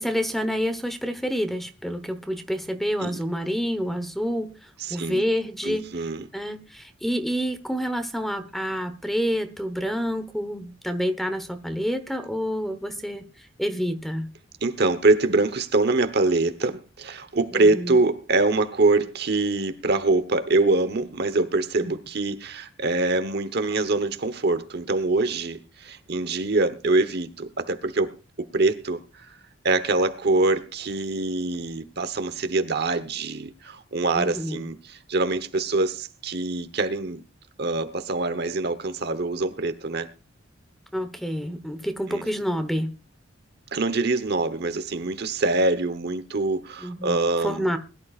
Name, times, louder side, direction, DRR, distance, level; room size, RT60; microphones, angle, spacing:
voice 1, 0.0-4.5 4.9-5.9 6.3-14.3 17.5-18.0 21.8-21.9 34.1-34.6 40.9-42.9 46.8-47.8, equal, ahead, 1.1 m, -28 dB
voice 2, 4.8-5.2 5.6-6.2 14.6-28.1 28.4-29.3 29.6-37.2 37.6-40.1 42.1-42.2 43.7-47.7, right 3 dB, 55° right, 1.1 m, -24 dB
21.0 x 11.5 x 2.5 m
head